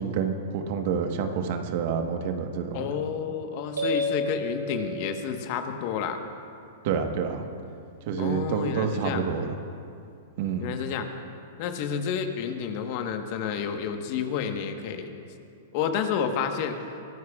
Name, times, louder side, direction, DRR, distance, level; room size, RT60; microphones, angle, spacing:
voice 1, 0.0-2.9 6.8-7.4 8.1-9.5 10.4-10.7, right 6 dB, 55° right, 5 dB, 1.3 m, -28 dB
voice 2, 2.7-6.2 8.2-9.2 10.6-11.1 11.6-15.1 15.7-16.7, left 7 dB, 50° left, 6 dB, 1.3 m, -30 dB
sound 1, 3.8-5.7, left 1 dB, 90° right, 3.4 m, -31 dB
23.0 x 15.5 x 2.4 m, 2.5 s
hypercardioid pair, 110°, 0 cm